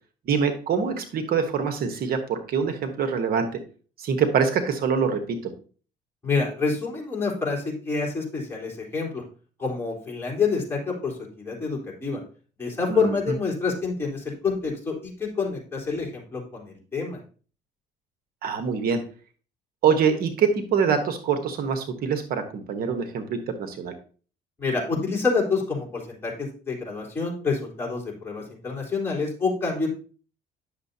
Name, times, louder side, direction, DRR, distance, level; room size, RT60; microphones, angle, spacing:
voice 1, 0.3-3.5 4.0-5.4 12.9-13.1 18.4-19.0 19.8-23.9, right 6 dB, 60° right, 7 dB, 1.1 m, -24 dB
voice 2, 6.2-9.2 9.6-12.2 12.6-17.2 24.6-29.9, left 4 dB, 15° left, -4 dB, 3.6 m, -27 dB
10.0 x 6.6 x 2.7 m, 0.40 s
cardioid pair, 110°, 17 cm